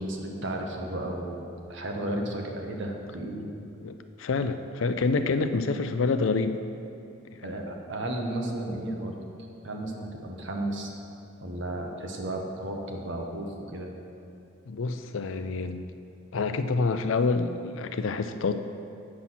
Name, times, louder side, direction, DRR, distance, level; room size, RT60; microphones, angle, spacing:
voice 1, 0.0-3.5 7.4-9.1 9.6-10.9 11.4-13.9, right 1 dB, 65° right, 1 dB, 1.1 m, -33 dB
voice 2, 3.8-6.6 7.4-7.5 14.7-15.9 16.3-18.6, left 4 dB, 80° left, 9 dB, 0.5 m, -27 dB
8.6 x 6.1 x 5.6 m, 2.6 s
head